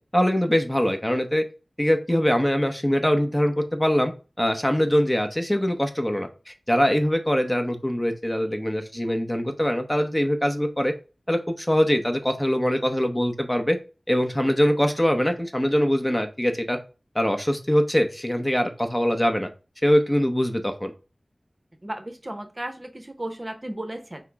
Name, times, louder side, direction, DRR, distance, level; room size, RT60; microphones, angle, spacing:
voice 1, 0.1-1.4 1.8-4.1 4.4-10.9 11.3-13.8 14.1-16.8 17.1-19.5 19.8-20.9, equal, 15° left, 6 dB, 0.7 m, -23 dB
voice 2, 21.8-24.2, right 1 dB, 35° right, 6 dB, 0.7 m, -34 dB
5.6 x 2.0 x 4.6 m, 0.33 s
wide cardioid pair, 60°, 0 cm